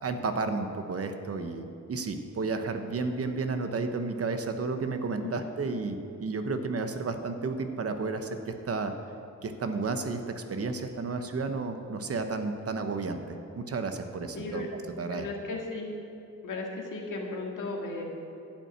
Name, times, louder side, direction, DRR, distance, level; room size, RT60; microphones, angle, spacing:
voice 1, 0.0-8.9 9.4-14.6 15.0-15.3, right 4 dB, 50° right, 7 dB, 0.8 m, -32 dB
voice 2, 14.4-14.7 15.0-15.9 16.4-18.0, left 3 dB, 85° left, -1 dB, 1.9 m, -35 dB
12.0 x 5.6 x 8.8 m, 2.8 s
wide cardioid pair, 145°, 30 cm